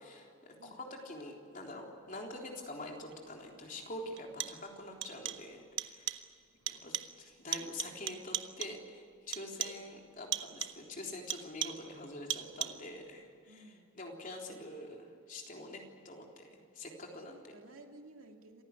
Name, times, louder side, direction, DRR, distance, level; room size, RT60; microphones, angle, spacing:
voice 1, 0.0-6.1 6.7-13.6 14.0-17.4, left 2 dB, 40° left, 1 dB, 3.7 m, -46 dB
sound 1, 3.1-3.2 4.2-4.7 5.0-5.5 5.8-6.3 6.7-7.2 7.5-8.9 9.3-9.9 10.3-10.9 11.3-11.9 12.3-12.9, right 11 dB, 60° right, 1.1 m, -39 dB
voice 2, 9.6-9.9 13.5-13.9 14.5-14.6 17.3-18.6, right 2 dB, 85° right, 3 dB, 2.7 m, -57 dB
28.0 x 16.0 x 9.9 m, 2.3 s
head